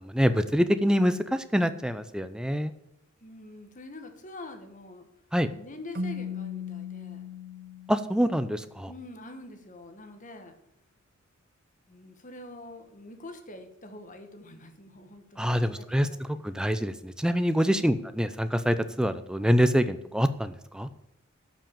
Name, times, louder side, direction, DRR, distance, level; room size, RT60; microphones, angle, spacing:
voice 1, 0.0-2.7 5.3-5.5 7.9-8.9 15.4-16.1 16.4-20.9, equal, 5° right, 11 dB, 0.5 m, -25 dB
voice 2, 3.2-5.1 5.5-7.3 8.9-10.5 11.9-16.7 17.8-18.0, left 2 dB, 40° left, 6 dB, 1.5 m, -45 dB
Keyboard (musical), 5.9-8.7, left 4 dB, 45° right, 0.8 m, -37 dB
12.0 x 6.0 x 7.0 m, 0.81 s
head